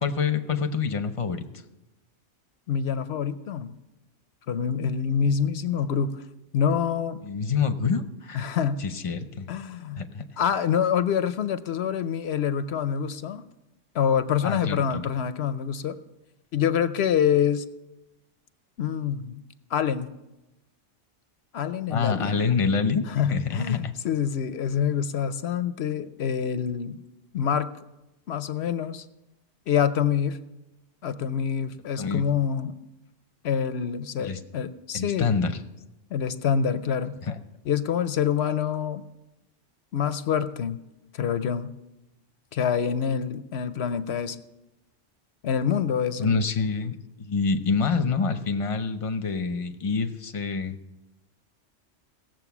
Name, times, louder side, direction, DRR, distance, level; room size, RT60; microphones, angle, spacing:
voice 1, 0.0-1.4 7.2-8.5 8.8-9.5 10.0-10.3 14.4-15.0 21.9-23.9 32.0-32.2 34.2-34.4 34.9-35.6 37.2-37.4 46.2-50.8, left 5 dB, 30° left, 8 dB, 0.7 m, -26 dB
voice 2, 2.7-3.7 4.5-6.2 6.5-7.2 8.3-8.8 9.5-10.0 10.4-13.5 13.9-16.0 16.5-17.6 18.8-19.4 19.7-20.1 21.5-22.5 23.1-27.0 27.3-27.7 28.3-29.0 29.7-30.4 31.0-32.8 33.4-35.3 36.1-37.2 37.7-39.0 39.9-40.8 41.1-41.7 42.5-44.4 45.4-46.3, left 8 dB, 60° left, 13 dB, 0.8 m, -26 dB
17.0 x 7.6 x 6.0 m, 0.98 s
omnidirectional pair, 1.3 m